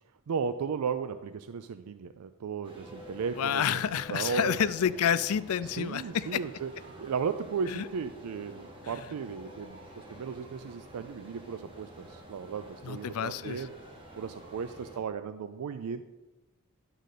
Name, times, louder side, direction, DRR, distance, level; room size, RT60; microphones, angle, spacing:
voice 1, 0.3-3.8 4.1-4.6 5.6-6.7 7.0-13.7 14.1-16.0, right 6 dB, 85° right, 10 dB, 0.4 m, -35 dB
sound 1, 2.6-15.0, right 1 dB, 25° right, 1.7 m, -49 dB
voice 2, 3.4-6.4 7.7-7.9 8.8-9.0 12.8-13.7, left 8 dB, 75° left, 15 dB, 0.4 m, -29 dB
11.0 x 3.9 x 6.6 m, 1.1 s
head